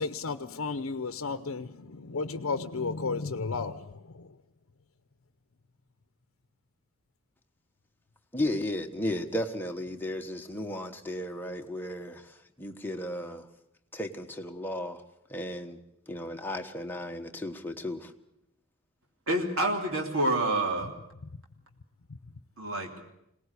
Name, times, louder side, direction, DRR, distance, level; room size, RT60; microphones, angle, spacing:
voice 1, 0.0-4.3, left 4 dB, 75° left, 10 dB, 0.7 m, -33 dB
voice 2, 8.3-13.5 13.9-15.0 15.3-15.8 16.1-18.1, left 1 dB, 10° left, 3 dB, 1.4 m, -34 dB
voice 3, 19.3-20.9 22.6-22.9, right 1 dB, 75° right, 2 dB, 3.2 m, -27 dB
22.5 x 18.5 x 8.3 m, 0.80 s
head